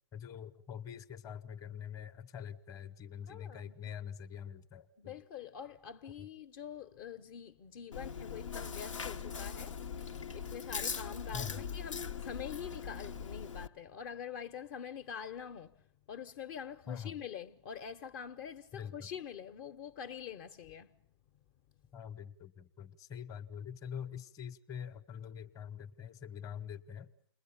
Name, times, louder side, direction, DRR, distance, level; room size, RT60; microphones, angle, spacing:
voice 1, 0.1-5.1 11.3-11.6 16.9-17.2 18.7-19.1 21.9-27.1, left 8 dB, 20° left, 1.1 m, -44 dB
voice 2, 3.3-3.9 5.0-21.0, left 8 dB, 45° left, 1.1 m, -45 dB
Chewing mastication, 7.9-13.7, left 6 dB, 90° left, 1.1 m, -41 dB
29.5 x 21.5 x 8.7 m
hypercardioid pair, 135°, 16 cm